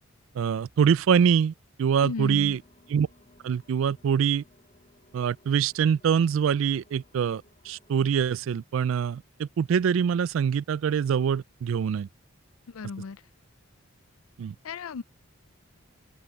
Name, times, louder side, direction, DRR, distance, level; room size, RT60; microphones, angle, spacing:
voice 1, 0.3-1.5 1.8-2.6 2.9-3.1 3.4-4.4 5.1-12.1 14.4-14.5, right 7 dB, 70° right, 0.3 m, -24 dB
voice 2, 2.0-2.6 12.7-13.2 14.6-15.0, left 5 dB, 85° left, 0.5 m, -35 dB
sound 1, 2.5-8.1, left 2 dB, 35° left, 2.8 m, -61 dB
open air
head